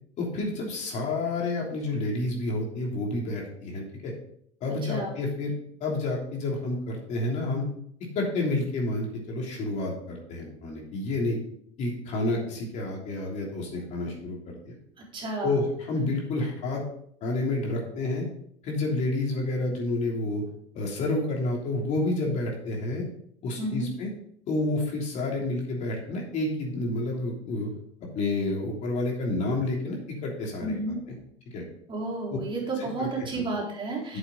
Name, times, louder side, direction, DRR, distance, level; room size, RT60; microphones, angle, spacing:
voice 1, 0.2-4.1 4.6-5.5 5.8-7.6 8.1-11.4 11.8-14.4 14.6-14.7 15.4-16.8 17.2-18.2 18.6-20.4 20.7-23.0 23.4-24.1 24.5-27.7 28.0-30.0 30.2-30.7 31.1-31.2 31.5-31.6 32.8-33.1 33.3-33.4 34.1-34.2, left 2 dB, 50° left, -1 dB, 3.1 m, -29 dB
voice 2, 4.8-5.1 15.0-15.6 23.6-23.9 30.6-31.0 31.9-34.2, right 2 dB, 35° right, -4 dB, 3.8 m, -32 dB
8.7 x 7.1 x 3.8 m, 0.67 s
supercardioid pair, 105°, 15 cm